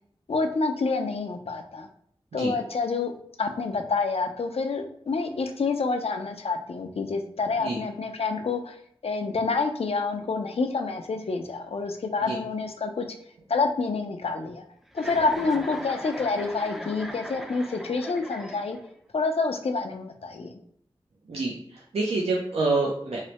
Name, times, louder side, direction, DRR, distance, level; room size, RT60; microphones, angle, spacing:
voice 1, 0.3-1.9 2.3-3.1 3.4-8.8 9.0-13.0 13.5-14.6 14.9-18.8 19.1-20.5, left 4 dB, 75° left, 6 dB, 0.4 m, -28 dB
Chuckle chortle, 14.9-19.0, equal, 5° right, 0.3 m, -39 dB
voice 2, 21.3-23.2, right 3 dB, 85° right, -3 dB, 0.4 m, -27 dB
3.1 x 2.0 x 2.8 m, 0.68 s
wide cardioid pair, 55°, 10 cm